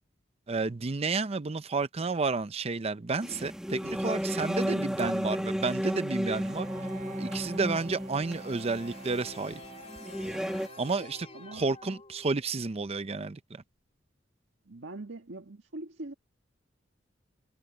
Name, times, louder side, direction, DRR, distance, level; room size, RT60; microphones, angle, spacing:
voice 1, 0.5-6.7 7.2-9.6 10.8-13.6, right 3 dB, 35° right, 0.6 m, -31 dB
sound 1, 3.2-10.7, equal, 5° right, 1.2 m, -33 dB
Bowed string instrument, 6.3-11.9, right 3 dB, 50° right, 4.0 m, -48 dB
sound 2, 8.2-12.6, left 3 dB, 35° left, 3.5 m, -50 dB
voice 2, 14.6-16.1, right 2 dB, 85° right, 1.6 m, -42 dB
head